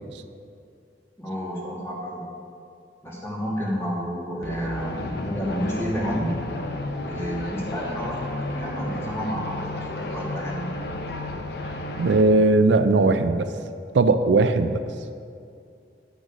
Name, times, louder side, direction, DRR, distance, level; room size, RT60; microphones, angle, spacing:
voice 1, 1.2-2.3 3.0-6.3 7.0-10.7, equal, 15° left, -5 dB, 2.0 m, -30 dB
sound 1, 4.4-12.2, left 2 dB, 60° left, 0.8 m, -32 dB
voice 2, 12.0-13.5 13.9-14.8, right 3 dB, 80° right, 9 dB, 0.4 m, -18 dB
10.0 x 6.3 x 5.1 m, 2.4 s
head